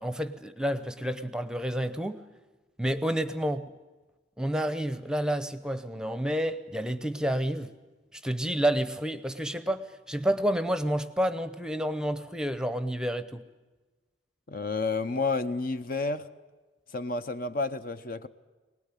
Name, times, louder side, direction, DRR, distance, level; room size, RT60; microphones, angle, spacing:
voice 1, 0.0-2.2 2.8-3.7 4.4-7.7 8.1-13.4, equal, 5° right, 12 dB, 0.8 m, -29 dB
voice 2, 14.5-16.3 16.9-18.3, left 3 dB, 50° left, 10 dB, 0.9 m, -30 dB
24.0 x 19.5 x 9.9 m, 1.2 s
head